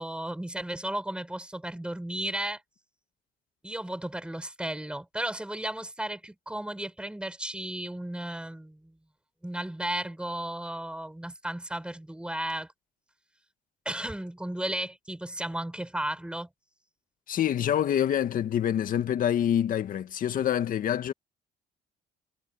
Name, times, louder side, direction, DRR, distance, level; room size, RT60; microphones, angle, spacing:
voice 1, 0.0-2.6 3.6-9.0 9.4-12.7 13.9-16.5, right 1 dB, 5° right, 7.3 m, -34 dB
voice 2, 17.3-21.1, left 10 dB, 55° left, 1.9 m, -26 dB
cardioid pair, 110°, 17 cm